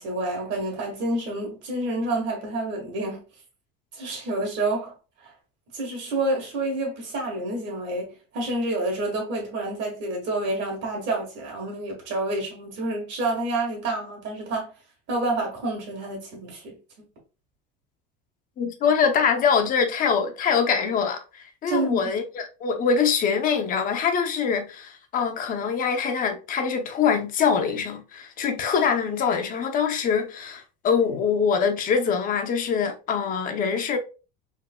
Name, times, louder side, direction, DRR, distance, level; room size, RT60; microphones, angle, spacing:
voice 1, 0.0-3.2 3.9-4.9 5.2-5.3 5.7-14.7 15.1-16.8 21.7-22.1, right 2 dB, 60° right, 1.7 m, -28 dB
voice 2, 18.6-34.0, left 6 dB, 40° left, 0.7 m, -24 dB
3.7 x 2.6 x 2.2 m
supercardioid pair, 120°, 21 cm